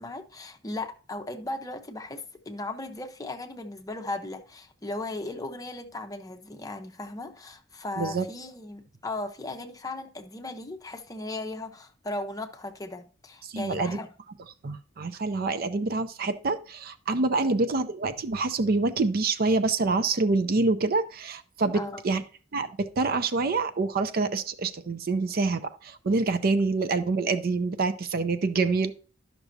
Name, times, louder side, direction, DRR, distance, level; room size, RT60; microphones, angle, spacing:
voice 1, 0.0-14.1 17.4-17.5 21.7-22.0, left 2 dB, 20° left, 0.7 m, -37 dB
voice 2, 13.4-14.0 14.6-22.2 22.5-28.9, right 3 dB, 50° right, 0.5 m, -26 dB
11.5 x 6.0 x 2.7 m
head